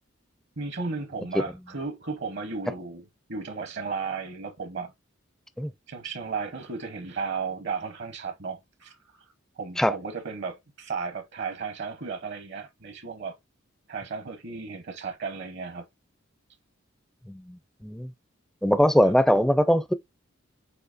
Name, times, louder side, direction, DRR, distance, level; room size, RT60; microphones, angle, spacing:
voice 1, 0.6-3.0 3.3-4.9 5.9-9.0 9.6-13.3 13.9-15.9 19.0-19.1, right 4 dB, 60° right, 0.9 m, -34 dB
voice 2, 17.3-18.1 18.6-19.9, equal, 5° left, 0.4 m, -22 dB
6.5 x 2.7 x 2.5 m
head